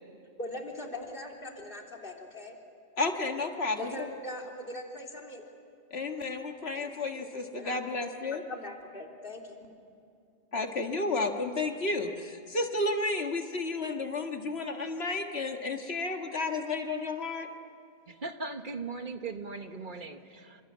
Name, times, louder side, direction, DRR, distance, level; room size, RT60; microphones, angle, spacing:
voice 1, 0.4-2.6 3.8-5.5 6.7-7.3 7.6-7.8 8.5-9.6, left 1 dB, 55° left, 4 dB, 3.7 m, -41 dB
voice 2, 3.0-3.9 5.9-8.4 10.5-17.5, left 3 dB, 80° left, 4 dB, 2.0 m, -32 dB
voice 3, 18.1-20.6, right 4 dB, 50° right, 6 dB, 1.6 m, -39 dB
28.5 x 27.5 x 7.4 m, 2.5 s
omnidirectional pair, 1.1 m